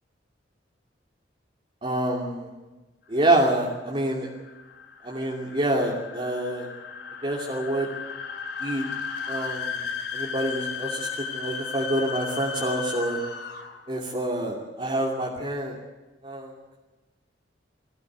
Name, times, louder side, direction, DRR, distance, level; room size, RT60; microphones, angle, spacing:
voice 1, 1.8-2.5 3.1-4.3 5.0-6.7 7.2-7.9 8.6-8.8 9.3-9.8 10.1-11.1 11.3-13.2 13.9-15.7 16.2-16.5, right 1 dB, 30° right, -2 dB, 2.9 m, -26 dB
sound 1, 3.7-13.9, left 6 dB, 60° left, 3.2 m, -35 dB
23.5 x 16.0 x 8.2 m, 1.2 s
head